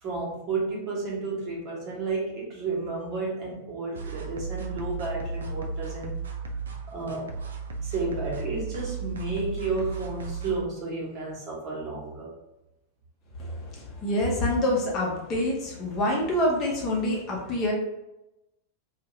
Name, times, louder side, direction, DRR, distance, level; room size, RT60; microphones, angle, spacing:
voice 1, 0.0-6.2 6.9-7.3 7.8-12.3, right 3 dB, 35° right, -5 dB, 1.2 m, -32 dB
sound 1, 3.9-10.6, right 4 dB, 70° right, 0.4 m, -35 dB
voice 2, 13.4-17.7, left 1 dB, 35° left, -3 dB, 0.7 m, -26 dB
2.7 x 2.4 x 3.0 m, 0.95 s
figure-of-eight pair, 90°, 0 cm